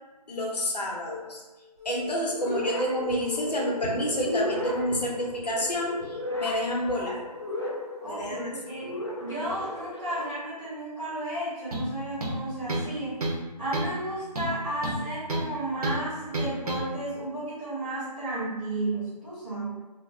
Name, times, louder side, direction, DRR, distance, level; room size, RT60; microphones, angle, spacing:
voice 1, 0.3-1.4 1.8-7.2 8.0-8.5, equal, 70° left, -2 dB, 0.8 m, -29 dB
sound 1, 1.1-1.3 1.8-5.6, left 8 dB, 20° left, 0.8 m, -39 dB
sound 2, 2.3-10.3, left 1 dB, 40° left, 0.5 m, -35 dB
voice 2, 8.0-8.9 9.2-13.2 13.6-19.7, right 1 dB, 10° right, -14 dB, 0.6 m, -33 dB
sound 3, 11.7-11.9 12.2-12.9 13.2-13.4 13.7-14.0 14.3-15.5 15.8-16.0 16.3-16.8, right 1 dB, 65° right, 0.7 m, -30 dB
2.5 x 2.0 x 3.1 m, 1.1 s
figure-of-eight pair, 165°, 21 cm